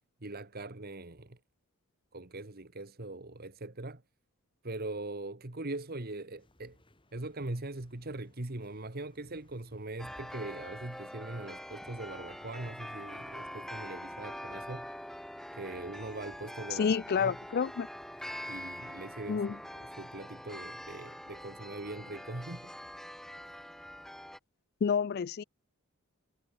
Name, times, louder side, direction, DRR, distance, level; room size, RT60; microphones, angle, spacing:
voice 1, 0.2-1.4 2.1-4.0 4.6-6.8 7.1-14.9 15.5-17.3 18.5-22.7, right 2 dB, 45° right, 1.6 m, -41 dB
sound 1, 6.4-19.2, left 1 dB, 25° left, 4.3 m, -64 dB
sound 2, 10.0-24.4, equal, ahead, 0.9 m, -44 dB
voice 2, 16.7-17.9 19.3-19.6 24.8-25.4, left 6 dB, 45° left, 0.3 m, -29 dB
head